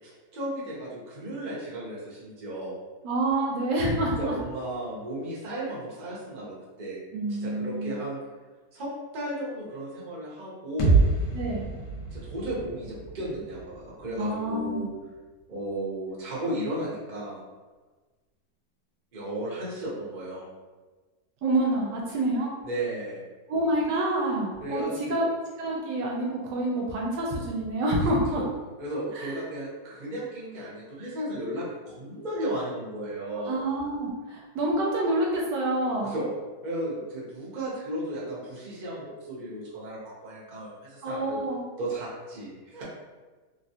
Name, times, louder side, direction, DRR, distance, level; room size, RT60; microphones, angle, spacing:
voice 1, 0.0-2.8 4.2-7.0 7.3-8.2 8.7-11.1 12.1-14.9 15.5-17.4 19.1-20.5 22.6-23.2 24.6-25.2 28.0-28.5 28.8-33.6 36.0-36.3 36.6-41.4 41.8-42.8, right 1 dB, 40° right, -6 dB, 0.7 m, -34 dB
voice 2, 3.0-4.3 7.1-8.0 11.3-11.7 14.2-14.9 21.4-22.5 23.5-24.8 25.1-25.3 25.6-28.4 29.1-29.4 33.5-36.2 41.0-41.6, right 1 dB, 75° right, -2 dB, 1.1 m, -27 dB
sound 1, 10.8-14.7, right 3 dB, 80° left, 1.4 m, -27 dB
3.5 x 2.3 x 2.7 m, 1.3 s
omnidirectional pair, 2.0 m